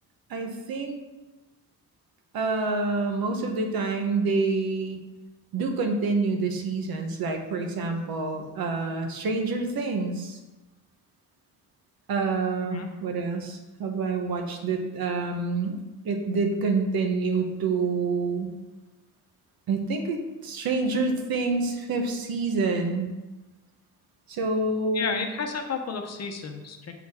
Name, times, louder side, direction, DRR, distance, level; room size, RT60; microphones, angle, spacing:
voice 1, 0.3-1.0 2.3-5.0 5.5-10.4 12.1-15.8 16.0-18.5 19.7-23.1 24.3-25.2, right 3 dB, 80° right, 4 dB, 1.3 m, -27 dB
voice 2, 24.9-26.9, left 5 dB, 45° left, 5 dB, 0.9 m, -32 dB
8.2 x 7.2 x 3.7 m, 1.1 s
wide cardioid pair, 175°, 36 cm